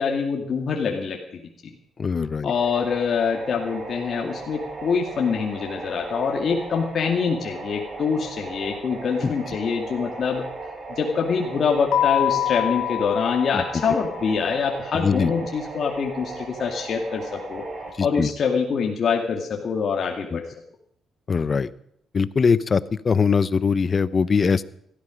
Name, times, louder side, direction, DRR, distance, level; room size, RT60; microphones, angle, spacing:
voice 1, 0.0-1.4 2.4-10.4 10.9-17.6 18.0-20.4, left 5 dB, 55° left, 0 dB, 2.2 m, -25 dB
voice 2, 2.0-2.5 9.2-9.3 13.5-13.6 14.9-15.3 18.0-18.3 20.3-20.4 21.3-21.7 22.1-24.6, left 5 dB, 40° left, 16 dB, 0.7 m, -21 dB
sound 1, 2.5-17.9, right 3 dB, 40° right, 5.6 m, -37 dB
Keyboard (musical), 11.9-14.5, left 13 dB, 80° left, 0.5 m, -26 dB
17.5 x 13.5 x 5.2 m, 0.71 s
cardioid pair, 90°, 0 cm